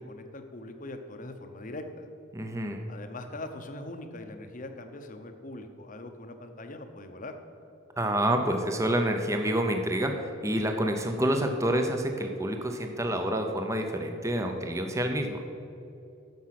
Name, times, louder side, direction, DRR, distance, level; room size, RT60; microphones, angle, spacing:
voice 1, 0.0-2.1 2.9-7.3, left 2 dB, 35° left, 7 dB, 0.8 m, -41 dB
voice 2, 2.3-2.8 8.0-15.4, right 1 dB, 15° right, 4 dB, 0.7 m, -28 dB
11.0 x 7.2 x 5.9 m, 2.8 s
head